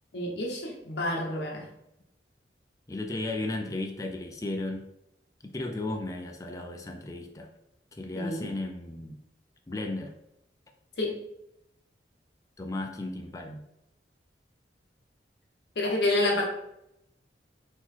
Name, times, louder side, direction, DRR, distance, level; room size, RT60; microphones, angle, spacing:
voice 1, 0.1-1.7 8.2-8.5 11.0-11.2 15.8-16.4, left 1 dB, 70° left, -1 dB, 0.8 m, -28 dB
voice 2, 2.9-4.9 5.4-7.5 7.9-9.2 9.7-10.1 12.6-13.6, left 2 dB, 20° left, 3 dB, 0.4 m, -35 dB
3.9 x 2.9 x 4.3 m, 0.81 s
head